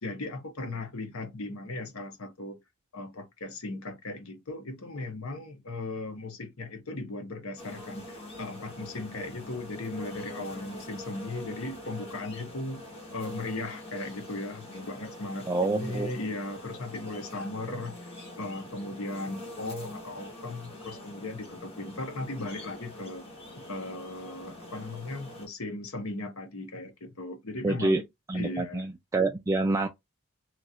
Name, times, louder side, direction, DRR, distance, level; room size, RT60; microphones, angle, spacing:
voice 1, 0.0-2.6 2.9-12.8 13.1-23.3 23.6-28.0 28.3-28.8, left 2 dB, 80° left, 1.0 m, -37 dB
sound 1, 7.6-25.5, left 1 dB, 30° left, 1.4 m, -44 dB
voice 2, 15.5-16.1 27.6-28.0 28.3-29.9, right 2 dB, 15° right, 0.3 m, -27 dB
3.1 x 2.5 x 2.7 m
head